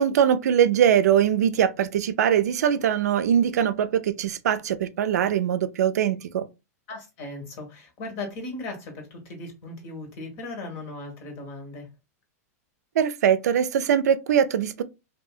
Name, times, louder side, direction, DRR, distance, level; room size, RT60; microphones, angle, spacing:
voice 1, 0.0-6.5 13.0-14.8, right 9 dB, 80° right, 0.4 m, -22 dB
voice 2, 6.9-11.9, left 2 dB, 50° left, 1.3 m, -37 dB
2.7 x 2.6 x 2.3 m
hypercardioid pair, 130°, 9 cm